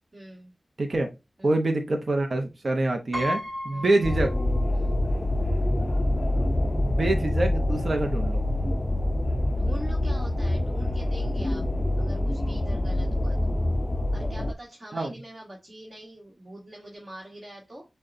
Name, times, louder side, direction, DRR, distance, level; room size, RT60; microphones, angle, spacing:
voice 1, 0.1-0.5 1.4-1.6 3.7-4.0 4.7-5.0 9.5-11.6 12.0-13.5 14.1-17.8, right 1 dB, 40° right, -3 dB, 1.4 m, -43 dB
voice 2, 0.8-1.1 1.4-4.3 6.8-8.4 14.9-15.1, right 2 dB, 55° right, 3 dB, 0.6 m, -26 dB
Piano, 3.1-4.9 5.3-5.4 6.5-6.6 6.9-7.2, left 1 dB, 20° right, 1.4 m, -34 dB
sound 1, 4.0-14.5, left 1 dB, 25° left, 0.4 m, -26 dB
6.3 x 2.2 x 2.5 m, 0.25 s
cardioid pair, 50°, 0 cm